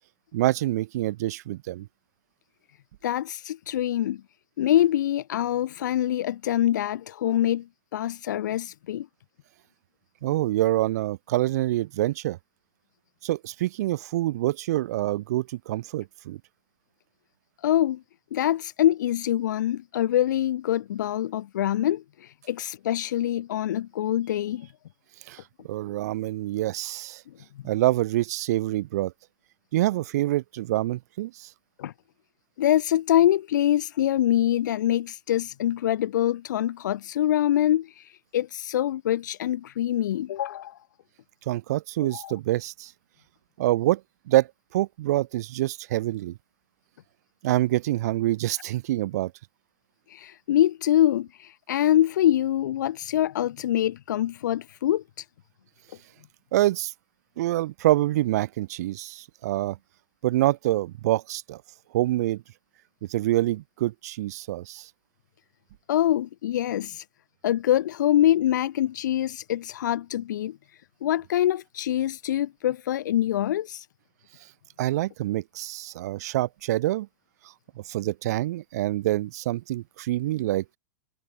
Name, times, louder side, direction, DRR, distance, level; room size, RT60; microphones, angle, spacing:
voice 1, 0.3-1.9 10.2-12.4 13.2-16.4 25.3-25.4 25.7-27.2 27.6-29.1 29.7-31.5 41.5-42.9 43.6-44.0 44.3-44.5 44.7-46.4 47.4-49.3 56.5-56.9 57.4-59.8 60.2-61.6 61.9-62.4 63.1-64.9 74.8-77.1 77.8-80.6, right 15 dB, 60° right, 2.9 m, -26 dB
voice 2, 3.0-4.2 4.6-7.7 7.9-9.1 17.6-18.0 18.3-24.7 31.8-31.9 32.6-40.8 42.1-42.3 50.1-55.2 65.9-67.0 67.4-70.6 71.0-73.9, left 12 dB, 75° left, 1.0 m, -24 dB
supercardioid pair, 155°, 10 cm